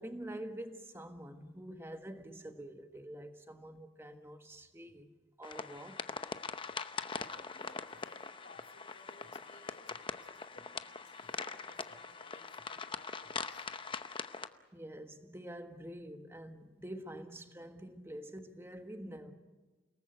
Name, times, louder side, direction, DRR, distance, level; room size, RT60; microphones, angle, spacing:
voice 1, 0.0-5.1 5.4-6.0 14.7-19.3, right 1 dB, 15° right, 1.5 m, -46 dB
sound 1, 5.4-14.5, left 4 dB, 30° left, 0.8 m, -42 dB
voice 2, 6.6-14.0, left 3 dB, 65° left, 3.5 m, -59 dB
29.5 x 19.0 x 8.0 m
head